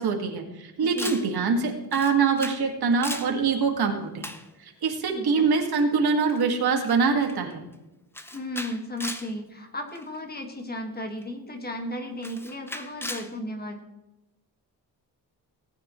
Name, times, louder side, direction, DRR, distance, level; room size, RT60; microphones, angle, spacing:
voice 1, 0.0-4.3 4.6-7.6, right 5 dB, 70° right, 3 dB, 2.0 m, -24 dB
voice 2, 0.8-1.2 5.1-5.5 8.3-13.8, left 1 dB, 25° left, 3 dB, 1.8 m, -35 dB
Camera, 1.0-1.3 1.9-2.7 2.9-3.3 4.2-4.5 5.6-5.8 6.3-6.4 6.8-6.9 7.2-7.5 8.1-9.3 9.9-10.2 11.2-11.3 12.2-13.3, left 1 dB, 5° left, 0.7 m, -37 dB
18.0 x 9.4 x 3.1 m, 0.99 s
wide cardioid pair, 140°, 39 cm